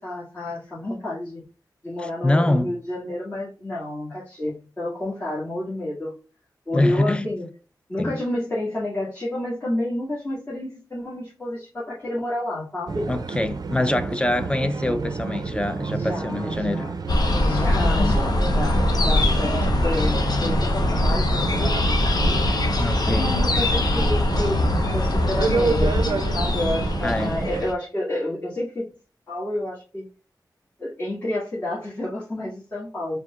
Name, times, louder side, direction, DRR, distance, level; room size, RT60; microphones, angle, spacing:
voice 1, 0.0-1.4 1.8-6.2 6.7-7.5 7.9-13.1 15.9-17.0 17.3-22.4 23.0-24.6 24.9-28.9 29.3-30.0 30.8-33.2, left 1 dB, 30° left, 2.0 m, -30 dB
voice 2, 2.2-2.7 6.7-7.3 8.0-8.2 13.1-16.9 17.7-18.2 22.8-23.3 27.0-27.4, left 1 dB, 15° left, 0.5 m, -24 dB
sound 1, 12.9-27.6, right 4 dB, 60° right, 0.4 m, -29 dB
sound 2, 17.1-27.7, left 1 dB, 65° left, 0.8 m, -22 dB
4.6 x 3.5 x 2.4 m
wide cardioid pair, 75°, 7 cm